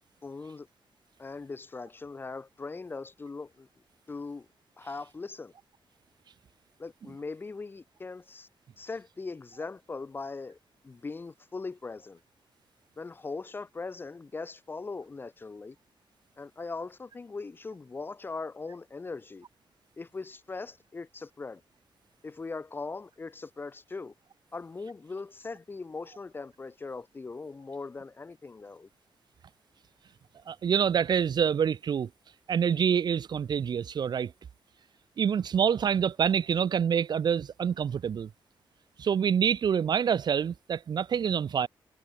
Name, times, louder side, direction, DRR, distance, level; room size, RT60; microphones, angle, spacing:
voice 1, 0.2-0.7 1.2-3.7 4.1-4.5 4.8-5.5 6.8-8.5 8.8-10.6 10.8-12.2 13.0-15.8 16.4-19.5 20.0-21.6 22.2-24.1 24.5-28.9, left 4 dB, 25° left, 0.8 m, -40 dB
voice 2, 30.5-32.1 32.5-34.3 35.2-38.3 39.0-41.7, right 7 dB, 50° right, 1.1 m, -26 dB
wide cardioid pair, 175°, 9 cm